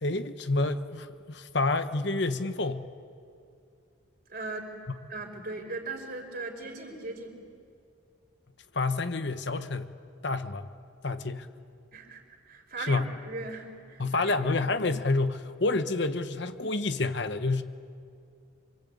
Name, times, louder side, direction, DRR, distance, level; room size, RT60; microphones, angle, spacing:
voice 1, 0.0-2.9 8.7-9.9 10.2-10.7 11.0-11.5 12.8-13.1 14.0-17.6, left 3 dB, 60° left, 10 dB, 1.0 m, -28 dB
voice 2, 4.3-4.7 5.1-7.4 11.9-12.2 12.5-14.3 14.6-14.7, right 3 dB, 50° right, 3 dB, 4.1 m, -38 dB
26.5 x 25.0 x 8.6 m, 2.5 s
head